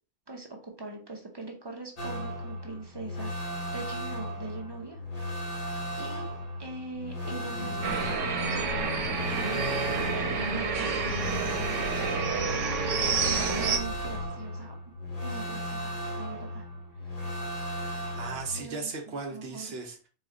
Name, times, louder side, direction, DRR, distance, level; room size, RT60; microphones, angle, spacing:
voice 1, 0.3-5.0 6.0-6.3 6.6-9.7 10.1-12.3 13.0-14.8 15.2-16.6 17.0-17.1 18.5-19.7, right 3 dB, 35° right, 1 dB, 0.4 m, -42 dB
sound 1, 2.0-18.6, equal, 40° left, 0.7 m, -36 dB
sound 2, 7.2-14.3, left 4 dB, 90° left, 1.0 m, -40 dB
sound 3, 7.8-13.8, right 5 dB, 85° right, 1.0 m, -29 dB
voice 2, 17.9-20.1, right 4 dB, 60° right, 3 dB, 0.9 m, -37 dB
4.1 x 2.2 x 3.7 m, 0.39 s
omnidirectional pair, 1.3 m